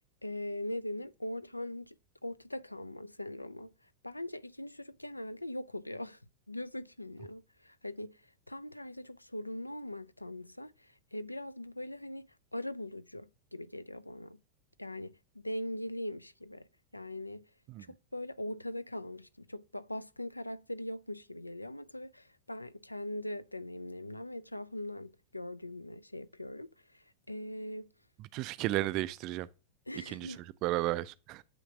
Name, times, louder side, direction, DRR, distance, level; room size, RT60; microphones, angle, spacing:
voice 1, 0.2-2.0 2.2-3.7 4.0-6.2 6.5-14.4 14.8-16.7 16.9-17.5 17.8-27.9 29.9-30.5, left 1 dB, 85° left, 0.3 m, -41 dB
voice 2, 28.3-29.5 30.1-31.4, right 16 dB, 40° right, 0.4 m, -33 dB
7.8 x 3.2 x 6.1 m
figure-of-eight pair, 90°, 0 cm